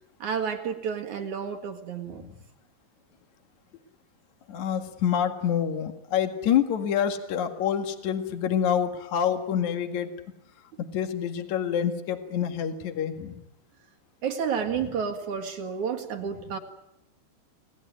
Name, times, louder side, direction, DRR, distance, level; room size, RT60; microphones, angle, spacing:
voice 1, 0.2-2.2 14.2-16.6, right 7 dB, 55° right, 5 dB, 2.8 m, -30 dB
voice 2, 4.5-10.1 10.9-13.4, left 8 dB, 55° left, 6 dB, 2.9 m, -27 dB
30.0 x 19.0 x 9.3 m, 0.85 s
omnidirectional pair, 4.7 m